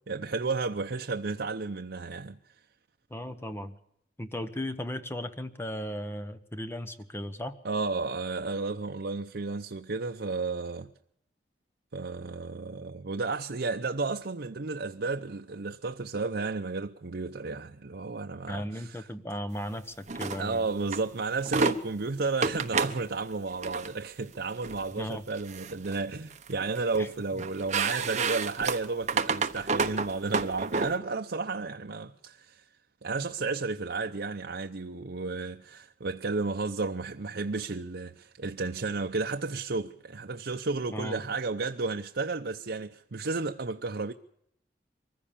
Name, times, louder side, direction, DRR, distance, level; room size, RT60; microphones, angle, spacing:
voice 1, 0.1-2.4 7.6-10.9 11.9-19.1 20.4-32.6 33.0-44.1, right 3 dB, 65° right, 0.7 m, -32 dB
voice 2, 3.1-3.7 4.2-7.6 18.5-20.7 25.0-25.2 26.9-27.1 40.9-41.2, left 1 dB, 15° left, 1.1 m, -36 dB
sound 1, 20.1-20.4 20.9-21.0 21.4-21.8 22.4-23.0 23.5-23.9 24.6-24.8 25.3-26.0 26.3-27.0 27.4-30.9, right 4 dB, 40° right, 1.1 m, -29 dB
23.5 x 15.5 x 7.2 m
head